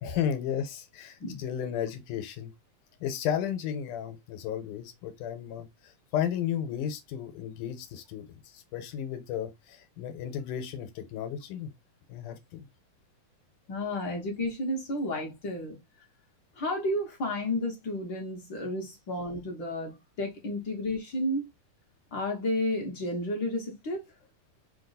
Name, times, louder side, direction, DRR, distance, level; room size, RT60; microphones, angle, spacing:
voice 1, 0.0-2.5 3.0-11.7 12.1-12.7, left 9 dB, 80° left, 2.3 m, -34 dB
voice 2, 13.7-15.8 16.6-21.4 22.1-24.0, left 1 dB, 55° left, 1.4 m, -32 dB
5.0 x 2.4 x 3.8 m
omnidirectional pair, 3.6 m